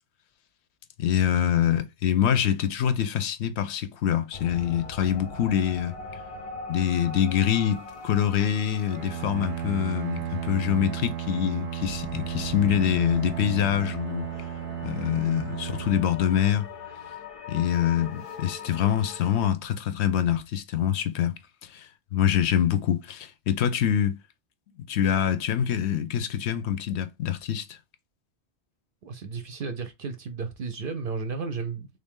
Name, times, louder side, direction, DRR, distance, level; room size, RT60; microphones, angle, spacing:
voice 1, 1.0-5.9 6.7-14.2 14.8-16.7 17.5-24.2 24.9-27.8, left 9 dB, 75° left, 0.8 m, -25 dB
sound 1, 4.3-19.5, left 4 dB, 40° left, 0.5 m, -42 dB
Bowed string instrument, 8.9-16.9, right 10 dB, 85° right, 0.9 m, -34 dB
voice 2, 29.0-31.9, right 5 dB, 60° right, 0.7 m, -33 dB
3.4 x 2.6 x 3.5 m
omnidirectional pair, 1.2 m